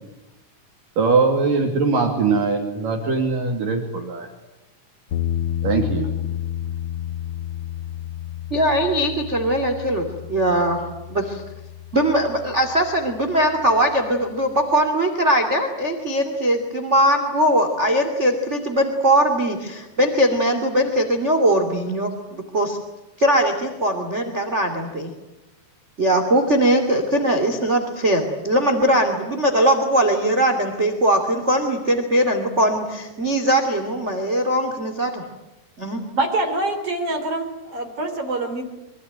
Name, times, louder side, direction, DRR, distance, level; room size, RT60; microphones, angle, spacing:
voice 1, 1.0-4.3 5.6-6.1, right 4 dB, 60° right, 3 dB, 4.2 m, -21 dB
sound 1, 5.1-14.0, left 11 dB, 80° left, 1.3 m, -31 dB
voice 2, 8.5-11.4 11.9-22.8 23.2-25.1 26.0-35.2 35.8-36.0, right 1 dB, 20° right, 6 dB, 2.3 m, -20 dB
voice 3, 36.2-38.6, right 2 dB, 40° right, 5 dB, 4.2 m, -25 dB
26.0 x 24.5 x 9.2 m, 1.0 s
omnidirectional pair, 4.5 m